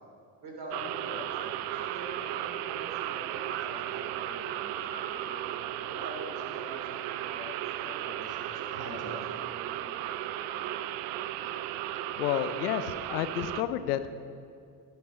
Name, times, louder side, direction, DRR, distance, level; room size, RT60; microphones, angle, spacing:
voice 1, 0.4-5.1 5.8-8.4 8.7-9.4, equal, 55° right, -1 dB, 3.4 m, -44 dB
sound 1, 0.7-13.6, right 14 dB, 70° right, 0.5 m, -35 dB
sound 2, 1.3-1.5 1.7-2.5 3.4-3.6 4.1-5.7 6.7-7.5 8.0-8.9 9.3-9.5 9.8-10.9 11.4-11.7 12.0-13.2, right 4 dB, 25° right, 1.2 m, -46 dB
sound 3, 2.2-13.2, left 1 dB, 40° left, 2.5 m, -53 dB
voice 2, 12.2-14.0, left 11 dB, 90° left, 12 dB, 0.6 m, -30 dB
12.5 x 11.0 x 4.3 m, 2.3 s
hypercardioid pair, 60°, 45 cm